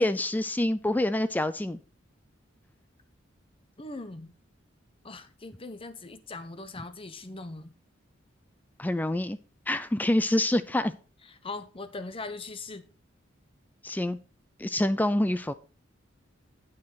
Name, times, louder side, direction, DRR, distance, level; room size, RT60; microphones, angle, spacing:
voice 1, 0.0-1.8 8.8-9.4 9.7-10.9 13.8-14.2 14.6-15.5, left 1 dB, 10° left, 0.4 m, -26 dB
voice 2, 3.8-4.3 5.0-7.7 11.4-12.8, left 3 dB, 30° left, 0.9 m, -40 dB
8.9 x 7.4 x 4.0 m
head